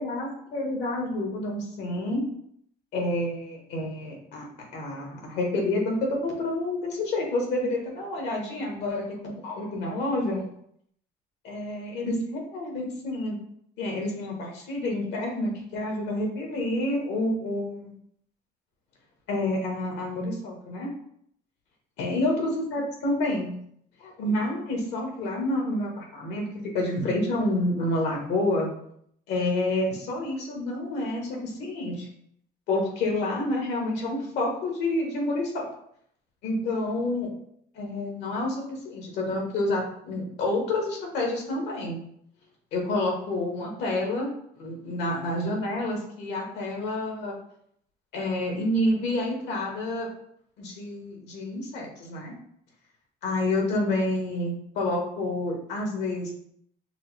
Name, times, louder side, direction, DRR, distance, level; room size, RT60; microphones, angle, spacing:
voice 1, 0.0-2.2 2.9-4.5 4.7-10.5 11.4-13.4 13.8-17.9 19.3-20.9 22.0-23.5 24.0-26.4 26.7-28.7 29.3-32.1 32.7-35.6 36.4-37.3 37.7-42.0 42.7-44.3 44.6-47.4 48.1-50.1 50.6-52.3 53.2-56.3, left 1 dB, 85° left, 0 dB, 1.4 m, -28 dB
5.7 x 2.0 x 3.3 m, 0.69 s
cardioid pair, 110°, 17 cm